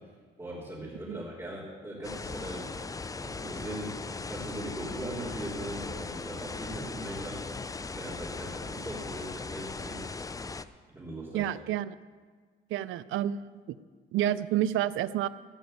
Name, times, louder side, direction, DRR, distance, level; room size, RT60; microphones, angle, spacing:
voice 1, 0.4-2.7 3.0-10.0 10.9-11.5, right 1 dB, 15° right, -8 dB, 3.5 m, -40 dB
sound 1, 2.0-10.6, left 4 dB, 15° left, 0.4 m, -38 dB
voice 2, 11.3-11.9 12.7-13.8 14.1-15.3, right 12 dB, 80° right, 17 dB, 0.5 m, -29 dB
15.0 x 5.2 x 9.0 m, 1.5 s
cardioid pair, 90°, 20 cm